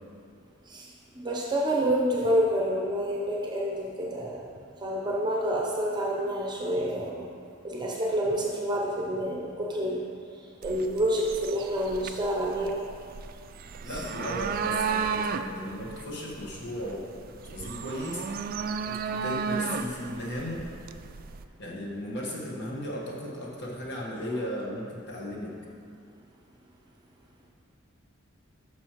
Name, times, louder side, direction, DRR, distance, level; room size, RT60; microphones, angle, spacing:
voice 1, 1.2-4.5 4.8-7.3 7.6-10.1 10.6-12.9 13.9-14.0, equal, 20° right, -2 dB, 0.6 m, -28 dB
sound 1, 10.6-21.4, right 6 dB, 45° right, 0.3 m, -34 dB
voice 2, 13.8-18.5 18.8-20.7 21.6-25.5, equal, 55° left, -3 dB, 1.5 m, -36 dB
10.5 x 6.3 x 3.0 m, 2.4 s
head